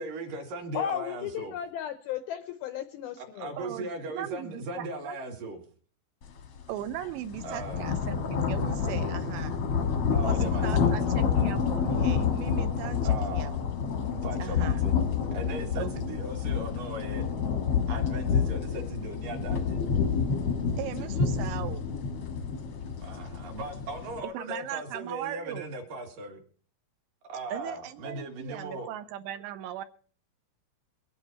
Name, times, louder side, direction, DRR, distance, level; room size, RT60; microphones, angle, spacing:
voice 1, 0.0-1.5 3.2-5.6 7.4-7.8 10.1-11.1 13.0-13.7 14.1-14.9 15.3-17.3 17.9-19.8 20.8-21.2 23.0-26.4 27.3-28.9, right 1 dB, 60° right, 3 dB, 3.0 m, -38 dB
voice 2, 0.7-3.5 7.0-7.1, left 9 dB, 85° left, 9 dB, 2.2 m, -34 dB
voice 3, 3.6-5.2 6.7-9.6 10.2-13.5 14.4-14.8 15.7-15.9 20.8-21.9 24.3-25.7 27.5-29.8, right 12 dB, 80° right, 10 dB, 3.0 m, -38 dB
sound 1, 6.4-6.6 6.9-24.2, left 6 dB, 65° left, 1.4 m, -28 dB
23.0 x 9.0 x 4.3 m, 0.44 s
omnidirectional pair, 5.2 m